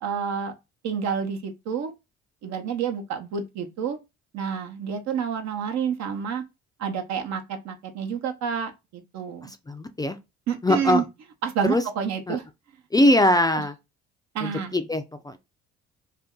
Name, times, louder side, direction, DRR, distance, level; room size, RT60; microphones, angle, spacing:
voice 1, 0.0-0.5 0.8-1.9 2.4-4.0 4.3-6.4 6.8-9.5 10.5-11.0 11.4-12.4 13.5-13.6 14.3-14.7, right 7 dB, 65° right, 0.8 m, -29 dB
voice 2, 9.4-10.2 10.6-11.0 11.7-11.8 12.3-12.4 12.9-13.7 14.4-15.4, left 1 dB, 15° left, 0.4 m, -22 dB
2.6 x 2.2 x 3.6 m
supercardioid pair, 60°, 29 cm